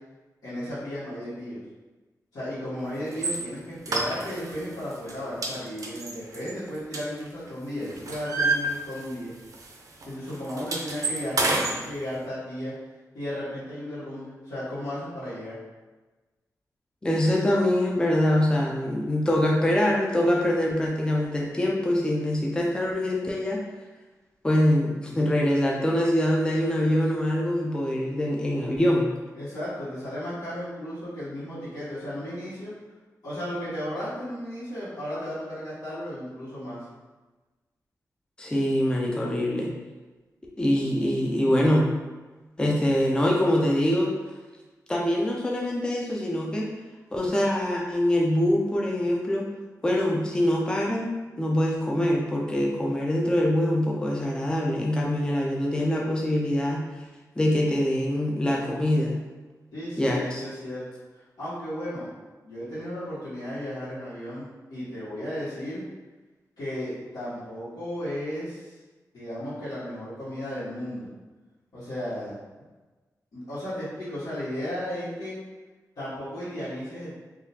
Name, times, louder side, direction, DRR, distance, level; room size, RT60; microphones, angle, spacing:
voice 1, 0.4-1.6 2.3-9.3 10.1-12.7 13.1-15.6 29.3-32.7 33.2-36.8 59.7-60.8 61.1-62.1 62.4-65.8 66.6-68.8 69.1-71.1 71.7-72.4 73.3-75.4 75.9-77.2, equal, 75° left, -14 dB, 1.4 m, -34 dB
sound 1, 3.1-3.4 3.9-4.6 4.9-5.1 5.4-7.5 7.8-9.3 9.5-9.7 10.0-11.8, right 2 dB, 60° right, 0.5 m, -28 dB
voice 2, 17.0-23.6 24.4-29.1 38.4-39.7 40.6-41.9 42.6-44.1 44.9-46.7 47.1-49.5 49.8-56.8 57.4-59.2 60.0-60.4, left 1 dB, 15° left, -2 dB, 0.4 m, -24 dB
3.8 x 2.4 x 2.7 m, 1.2 s
wide cardioid pair, 145°, 6 cm